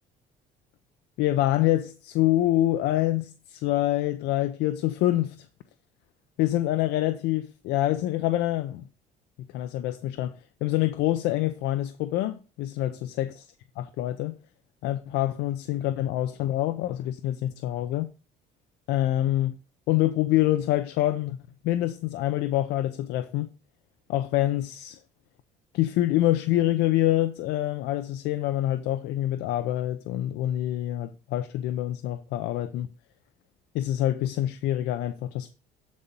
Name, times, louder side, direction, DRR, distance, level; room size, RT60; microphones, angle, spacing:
voice 1, 1.2-5.5 6.4-8.8 9.4-13.5 13.8-14.3 14.8-18.1 18.9-19.6 19.9-21.4 21.6-23.5 24.1-25.0 25.7-32.9 33.7-35.5, left 14 dB, 85° left, 0.6 m, -26 dB
8.1 x 4.2 x 5.2 m
cardioid pair, 110°, 17 cm